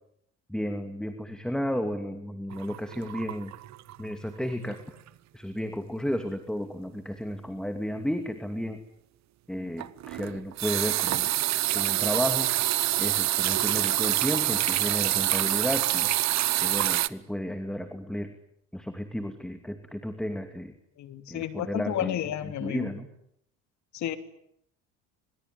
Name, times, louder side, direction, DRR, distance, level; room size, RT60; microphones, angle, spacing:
voice 1, 0.5-3.5 4.0-5.0 5.3-8.8 9.5-11.3 11.7-12.5 13.0-16.1 16.6-18.3 18.7-20.7 21.3-23.1, equal, ahead, 7 dB, 2.7 m, -33 dB
sound 1, 2.5-4.1 4.4-4.7 5.1-5.2 9.8-17.1, right 14 dB, 55° right, 1.2 m, -26 dB
voice 2, 21.0-22.9 23.9-24.2, left 11 dB, 60° left, 9 dB, 3.2 m, -32 dB
26.5 x 21.5 x 9.7 m, 0.74 s
supercardioid pair, 95°, 32 cm